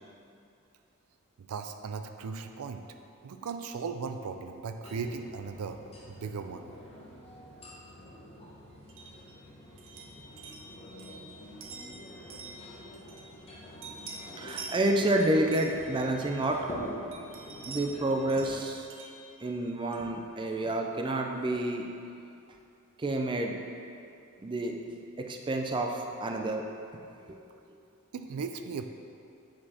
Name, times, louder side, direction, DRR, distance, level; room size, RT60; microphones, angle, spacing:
voice 1, 1.4-2.8 3.2-5.8 6.1-6.7 28.1-28.8, right 5 dB, 90° right, 7 dB, 0.4 m, -37 dB
sound 1, 4.8-18.6, equal, 30° left, 0.9 m, -46 dB
sound 2, 8.9-13.5 13.8-16.7 17.1-20.2, right 4 dB, 60° right, 0.7 m, -47 dB
voice 2, 14.3-16.7 17.7-18.9 19.4-21.9 23.0-23.6 24.4-24.8 25.2-26.6, right 1 dB, 20° right, 2 dB, 0.4 m, -29 dB
7.7 x 4.1 x 4.2 m, 2.6 s
head